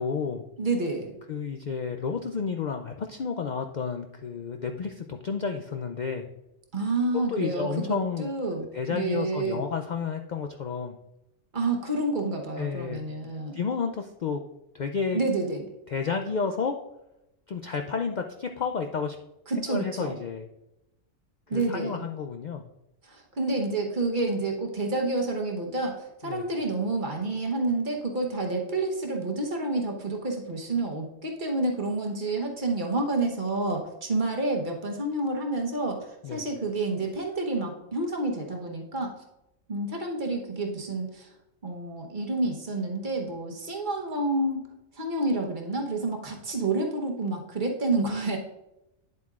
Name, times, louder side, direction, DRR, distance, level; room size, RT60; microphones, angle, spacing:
voice 1, 0.0-0.4 1.3-6.3 7.3-8.3 8.7-11.0 12.6-13.0 13.5-14.4 14.7-15.2 15.5-15.6 15.9-16.8 17.5-19.2 19.6-20.5 21.5-22.6 26.2-26.5 36.2-36.4, left 5 dB, 80° left, 5 dB, 0.4 m, -31 dB
voice 2, 0.6-1.2 6.7-9.6 11.5-13.6 15.1-15.7 19.5-20.2 21.5-22.0 23.0-39.1 39.7-41.3 41.6-44.7 45.0-48.4, right 2 dB, 40° right, 1 dB, 1.1 m, -29 dB
9.6 x 7.8 x 2.4 m, 0.90 s
omnidirectional pair, 1.4 m